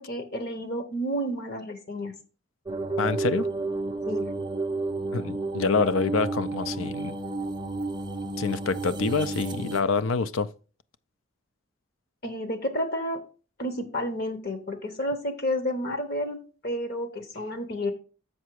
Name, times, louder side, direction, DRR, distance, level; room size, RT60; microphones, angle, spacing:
voice 1, 0.0-2.1 4.1-4.3 12.2-13.2 13.6-17.9, equal, 50° left, 1.0 m, -31 dB
sound 1, 2.7-9.8, right 3 dB, 20° right, 0.6 m, -31 dB
voice 2, 3.0-3.5 5.1-7.2 8.4-10.5, left 4 dB, 80° left, 0.5 m, -26 dB
7.2 x 5.8 x 4.7 m
head